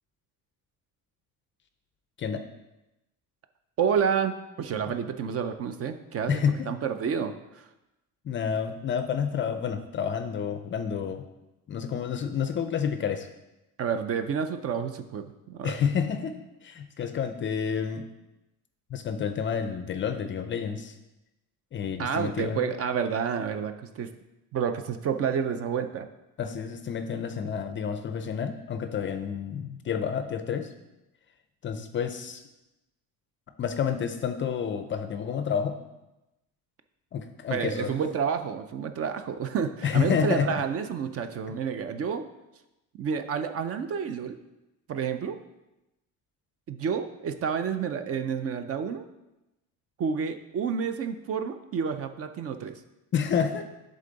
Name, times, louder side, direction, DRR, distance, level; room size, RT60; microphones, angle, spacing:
voice 1, 3.8-6.4 6.7-7.6 13.8-15.8 22.0-24.1 24.5-26.1 37.5-42.3 43.0-44.4 44.9-45.4 46.7-49.0 50.0-52.8, right 7 dB, 40° right, 9 dB, 0.4 m, -29 dB
voice 2, 6.3-6.7 8.2-11.2 11.7-13.3 15.6-16.3 16.6-18.1 18.9-20.9 21.7-22.7 26.4-30.7 31.6-32.4 33.6-35.8 37.1-38.0 39.8-40.6 53.1-53.7, left 7 dB, 35° left, 9 dB, 0.4 m, -29 dB
11.0 x 3.8 x 3.9 m, 0.95 s
cardioid pair, 165°, 36 cm